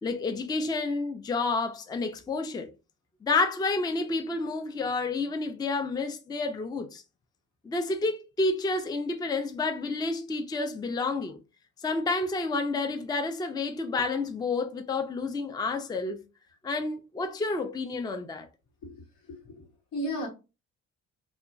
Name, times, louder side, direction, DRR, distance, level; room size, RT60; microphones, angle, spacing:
voice 1, 0.0-2.7 3.2-7.0 7.6-11.4 11.8-16.2 16.6-18.5, left 3 dB, 15° left, 0.4 m, -30 dB
voice 2, 19.3-20.3, equal, 80° left, 1.2 m, -35 dB
2.8 x 2.3 x 2.5 m
cardioid pair, 90°, 30 cm